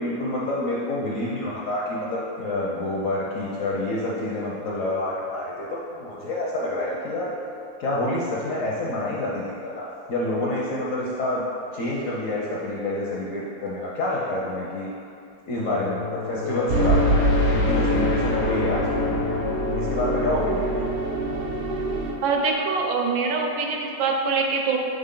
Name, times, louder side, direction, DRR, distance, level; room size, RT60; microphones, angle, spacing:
voice 1, 0.0-7.3 7.8-11.4 11.7-14.9 15.5-17.2 17.5-19.1 19.7-20.8, left 1 dB, 65° left, -5 dB, 0.8 m, -28 dB
sound 1, 15.6-22.2, left 6 dB, 85° left, 1.4 m, -30 dB
sound 2, 16.7-22.1, right 1 dB, 65° right, 0.9 m, -24 dB
voice 2, 22.2-24.8, right 4 dB, 85° right, 1 dB, 1.4 m, -24 dB
6.6 x 3.8 x 3.7 m, 2.6 s
omnidirectional pair, 2.1 m